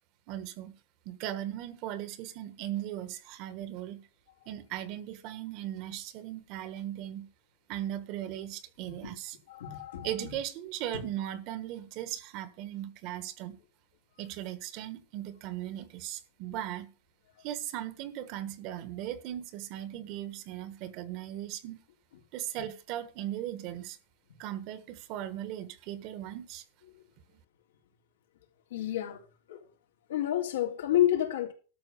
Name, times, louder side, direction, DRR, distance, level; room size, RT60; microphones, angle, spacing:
voice 1, 0.3-0.8 1.0-4.1 4.4-7.3 7.7-9.4 10.0-13.6 14.2-16.9 17.4-21.8 22.3-24.0 24.4-26.6, right 12 dB, 45° right, 1.4 m, -38 dB
voice 2, 9.5-10.1 10.9-11.0 28.7-29.2 29.5-29.6 30.1-31.5, left 12 dB, 85° left, 3.5 m, -29 dB
12.5 x 6.0 x 6.8 m
supercardioid pair, 150°, 0 cm